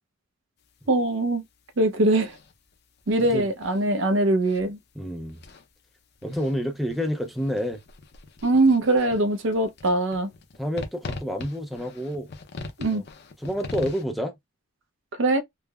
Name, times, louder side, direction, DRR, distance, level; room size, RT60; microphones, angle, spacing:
sound 1, 0.6-14.0, left 3 dB, 50° left, 0.5 m, -43 dB
voice 1, 0.9-1.4 1.8-2.3 3.1-4.8 8.4-10.3 12.8-13.0 15.2-15.4, right 2 dB, 60° right, 0.5 m, -22 dB
voice 2, 5.0-5.4 6.2-7.8 10.6-12.3 12.9-13.0 13.4-14.3, equal, ahead, 0.4 m, -29 dB
3.4 x 2.0 x 2.2 m
head